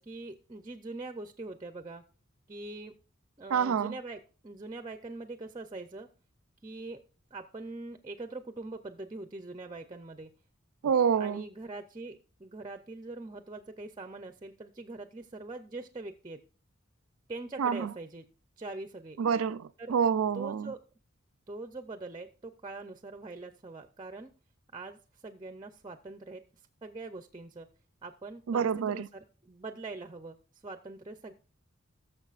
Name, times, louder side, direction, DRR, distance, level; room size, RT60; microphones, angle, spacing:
voice 1, 0.0-2.0 2.5-2.9 3.4-6.1 6.6-7.0 7.3-10.3 11.2-16.4 17.3-18.2 18.6-19.2 19.8-20.0 20.3-20.8 21.5-24.3 24.7-27.7 28.0-31.3, right 2 dB, 20° right, 0.6 m, -43 dB
voice 2, 3.5-3.9 10.8-11.4 17.6-17.9 19.2-20.7 28.5-29.1, right 7 dB, 85° right, 0.4 m, -27 dB
19.0 x 6.7 x 2.4 m
head